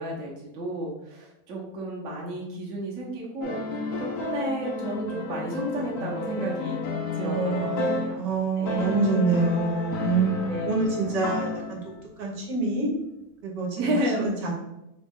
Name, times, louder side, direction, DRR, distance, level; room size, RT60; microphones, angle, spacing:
voice 1, 0.0-6.8 7.1-8.2 8.6-9.0 10.5-10.8 11.2-11.3 13.8-14.3, right 1 dB, 55° right, -3 dB, 1.2 m, -32 dB
sound 1, 3.4-8.3 8.6-12.0, left 3 dB, 60° left, 0.9 m, -31 dB
voice 2, 7.2-11.8 12.2-12.9 13.4-14.6, right 4 dB, 75° right, -2 dB, 1.6 m, -26 dB
4.0 x 3.1 x 3.6 m, 0.88 s
omnidirectional pair, 1.9 m